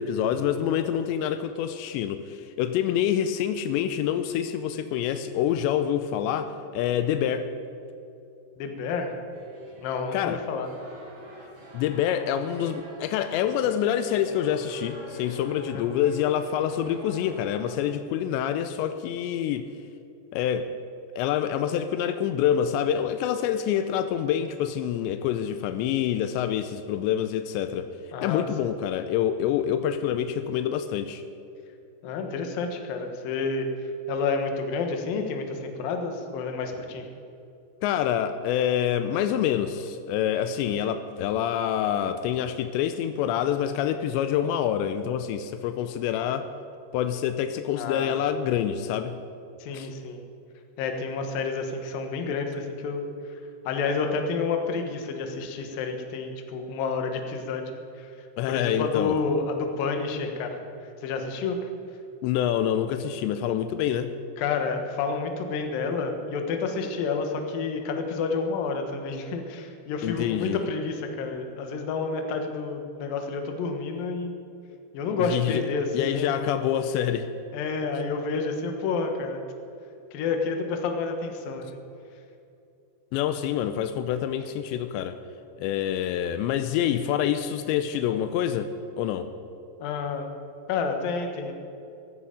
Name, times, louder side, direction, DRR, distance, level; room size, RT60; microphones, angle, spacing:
voice 1, 0.0-7.5 10.1-10.4 11.7-19.7 20.3-20.7 21.2-27.9 28.2-31.2 37.8-46.5 46.9-49.2 49.7-49.9 58.4-59.2 62.2-64.1 70.0-70.6 75.2-75.6 75.9-77.3 83.1-85.2 85.6-89.3, left 10 dB, 85° left, 10 dB, 2.9 m, -26 dB
voice 2, 8.6-9.2 9.8-10.7 15.7-15.8 28.1-28.7 32.0-33.7 34.1-37.1 47.8-48.2 49.6-50.2 50.8-61.7 64.4-74.3 74.9-76.3 77.5-79.4 80.1-81.8 89.8-90.3 90.7-91.5, left 4 dB, 65° left, 4 dB, 2.7 m, -30 dB
sound 1, 9.3-17.8, right 1 dB, 65° right, 6.4 m, -46 dB
17.0 x 14.0 x 5.1 m, 2.6 s
omnidirectional pair, 5.0 m